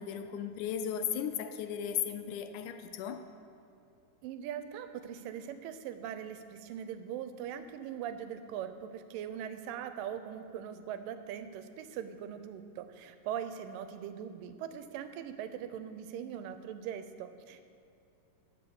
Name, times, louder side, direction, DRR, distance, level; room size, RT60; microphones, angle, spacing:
voice 1, 0.0-3.3, left 9 dB, 80° left, 7 dB, 2.0 m, -36 dB
voice 2, 4.2-17.6, right 9 dB, 85° right, 10 dB, 2.3 m, -41 dB
12.5 x 5.2 x 7.0 m, 2.6 s
omnidirectional pair, 3.8 m